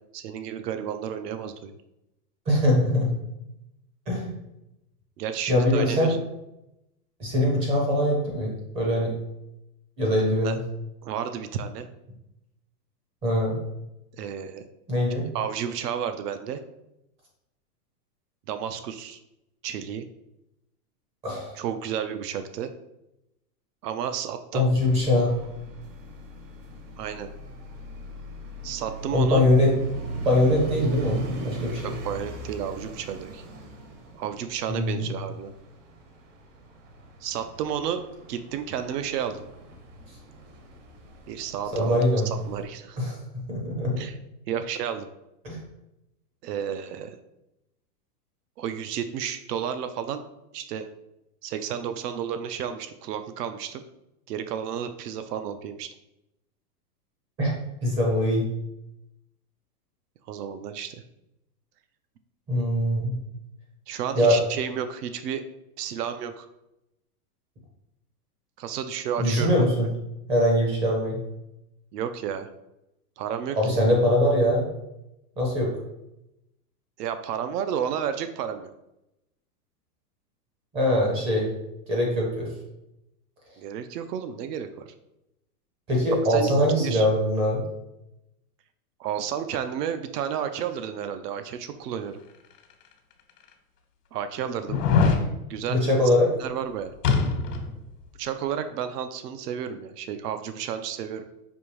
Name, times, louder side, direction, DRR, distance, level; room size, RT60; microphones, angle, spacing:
voice 1, 0.1-1.7 5.2-6.2 10.4-10.6 11.0-11.9 14.2-14.7 15.3-16.6 18.5-19.2 19.6-20.1 21.6-22.7 23.8-24.7 27.0-27.3 28.6-29.4 31.8-33.4 34.1-35.5 37.2-38.0 38.3-39.5 41.3-43.0 44.0-44.2 44.5-45.1 46.4-47.2 48.6-50.2 50.5-50.9 51.4-53.8 54.3-55.9 60.3-61.0 63.9-65.4 65.8-66.5 68.6-69.7 71.9-72.5 73.2-73.6 77.0-78.7 83.6-84.9 86.3-86.5 86.8-87.1 89.0-92.2 94.1-94.8 95.5-95.8 96.4-96.9 98.2-101.3, right 8 dB, 85° right, 9 dB, 0.6 m, -31 dB
voice 2, 2.5-3.1 4.1-4.3 5.5-6.1 7.2-9.1 10.0-10.6 13.2-13.6 14.9-15.3 21.2-21.6 24.5-25.4 29.1-29.7 30.2-31.9 34.7-35.1 41.7-42.3 43.0-44.0 45.4-45.6 57.4-57.5 57.8-58.5 62.5-63.2 64.1-64.4 69.2-69.9 70.3-71.2 73.6-74.7 75.4-75.7 80.7-81.5 81.9-82.5 85.9-87.6 95.0-95.1 95.7-96.3, left 1 dB, 15° right, -1 dB, 0.4 m, -22 dB
sound 1, 24.8-42.7, right 2 dB, 50° right, 0.8 m, -39 dB
sound 2, 92.7-92.8 93.5-93.6 94.7-95.2 97.0-97.7 98.0-98.1, left 5 dB, 80° left, 1.0 m, -22 dB
5.3 x 2.6 x 3.1 m, 0.89 s
supercardioid pair, 150°, 46 cm